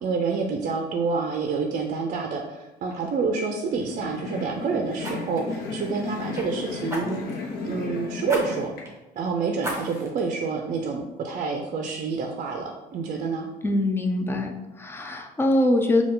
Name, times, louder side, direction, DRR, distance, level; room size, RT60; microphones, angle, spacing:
voice 1, 0.0-7.2 7.6-8.7 9.2-13.5, right 4 dB, 50° right, 3 dB, 0.5 m, -28 dB
Fire, 2.3-2.5 2.9-3.1 5.0-6.5 6.9-7.4 8.3-8.4 8.8-8.9 9.6-10.2 10.7-10.8, right 1 dB, 15° right, 1.2 m, -35 dB
sound 1, 3.7-8.8, left 4 dB, 65° left, 0.7 m, -34 dB
voice 2, 13.6-16.0, left 1 dB, 15° left, 4 dB, 0.5 m, -23 dB
4.3 x 2.3 x 3.7 m, 1.0 s
cardioid pair, 110°, 17 cm